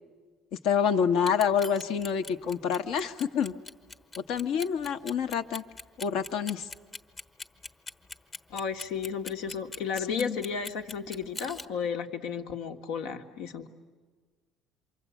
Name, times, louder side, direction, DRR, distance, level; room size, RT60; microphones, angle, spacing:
voice 1, 0.6-3.5 4.2-5.6 6.0-6.7 10.1-10.4, left 7 dB, 70° left, 8 dB, 1.1 m, -27 dB
Clock, 1.2-11.7, left 3 dB, 25° left, 1.1 m, -41 dB
voice 2, 8.5-13.7, left 6 dB, 90° left, 4 dB, 1.7 m, -33 dB
28.0 x 24.5 x 8.4 m, 1.5 s
cardioid pair, 150°, 0 cm